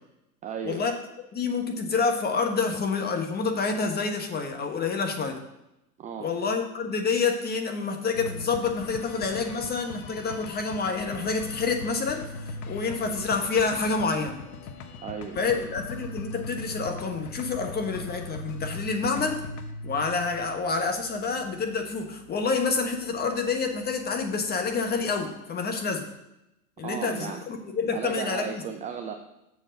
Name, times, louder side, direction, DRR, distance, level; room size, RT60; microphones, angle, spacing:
voice 1, 0.4-0.8 6.0-6.3 15.0-15.7 26.8-27.4 27.9-29.1, right 7 dB, 15° right, 4 dB, 0.4 m, -35 dB
voice 2, 1.3-5.4 6.2-14.4 15.4-19.4 19.8-26.1 26.8-28.6, left 4 dB, 20° left, 4 dB, 1.3 m, -28 dB
sound 1, 8.1-25.2, left 3 dB, 70° left, 1.2 m, -41 dB
7.1 x 4.8 x 6.4 m, 0.89 s
hypercardioid pair, 110°, 45 cm